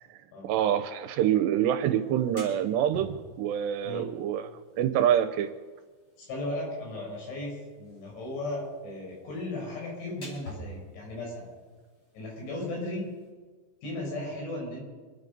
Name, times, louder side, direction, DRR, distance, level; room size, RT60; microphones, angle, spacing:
voice 1, 0.4-4.5 4.8-5.5, right 10 dB, 80° right, 9 dB, 2.7 m, -26 dB
sound 1, 2.0-13.3, equal, 30° left, 5.1 m, -50 dB
voice 2, 6.2-11.5 12.1-13.1 13.8-14.8, left 1 dB, 80° left, -2 dB, 7.5 m, -36 dB
27.0 x 9.9 x 5.3 m, 1.4 s
omnidirectional pair, 5.3 m